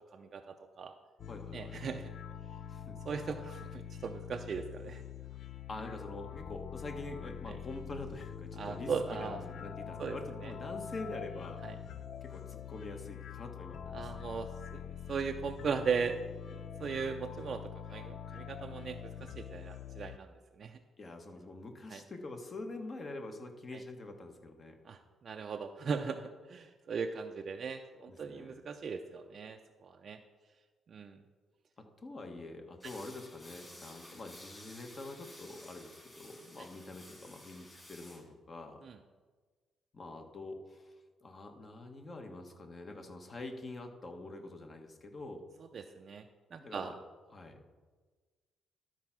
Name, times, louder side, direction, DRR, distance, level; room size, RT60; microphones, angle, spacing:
voice 1, 0.1-0.9 1.5-2.1 3.0-5.0 7.5-7.6 8.6-9.4 10.0-10.2 10.4-10.5 11.6-11.8 13.9-14.8 15.1-16.2 16.5-20.8 21.9-22.0 23.7-23.8 24.8-30.2 30.9-31.2 38.8-39.0 45.7-46.2 46.5-46.9, right 5 dB, 50° right, 4 dB, 0.5 m, -38 dB
sound 1, 1.2-20.2, left 9 dB, 65° left, 0.4 m, -45 dB
voice 2, 1.3-1.9 2.7-3.0 5.7-11.6 12.2-14.1 21.0-24.8 28.1-28.5 31.8-38.8 39.9-40.9 41.2-45.5 46.6-46.9 47.3-47.6, left 2 dB, 40° left, 4 dB, 1.3 m, -45 dB
sound 2, 32.8-38.2, left 1 dB, 15° left, 2.3 m, -54 dB
12.5 x 4.5 x 6.0 m, 1.4 s
cardioid pair, 90°, 0 cm